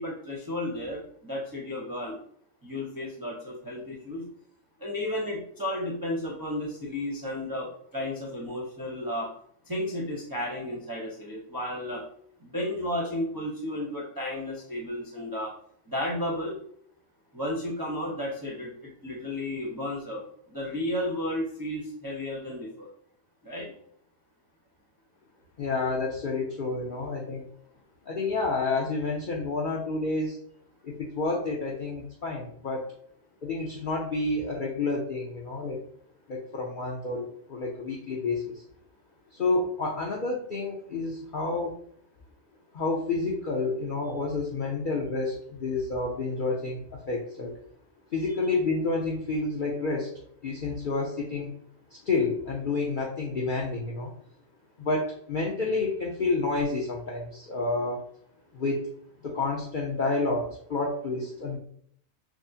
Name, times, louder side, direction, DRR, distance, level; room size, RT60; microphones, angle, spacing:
voice 1, 0.0-2.2 2.6-4.2 4.8-9.3 9.7-12.0 12.4-15.5 15.9-16.6 17.3-22.9 23.4-23.7, left 1 dB, 20° right, -4 dB, 0.6 m, -33 dB
voice 2, 25.6-27.5 28.1-30.4 30.8-32.9 33.4-35.8 36.3-38.6 39.3-41.7 42.7-47.5 48.1-50.1 50.4-51.5 51.9-54.1 54.8-58.0 58.5-58.9 59.2-61.6, left 3 dB, 50° left, -2 dB, 0.7 m, -29 dB
6.1 x 2.1 x 2.7 m, 0.65 s
omnidirectional pair, 1.4 m